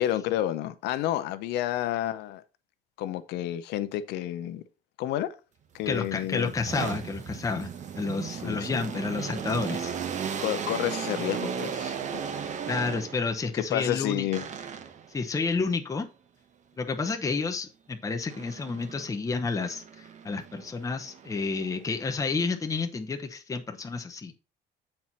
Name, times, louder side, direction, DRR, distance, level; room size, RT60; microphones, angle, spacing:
voice 1, 0.0-2.4 3.0-4.6 5.0-5.3 5.7-6.5 8.3-8.9 10.4-12.2 13.5-14.5, left 12 dB, 85° left, 0.7 m, -30 dB
sound 1, 5.8-13.4 14.3-15.1 18.3-19.1 19.6-22.0, right 7 dB, 45° right, 0.9 m, -36 dB
voice 2, 5.9-7.7 8.0-9.9 12.7-14.3 15.1-16.1 16.8-24.3, left 4 dB, 20° left, 0.8 m, -30 dB
7.4 x 4.5 x 4.1 m
cardioid pair, 110°, 17 cm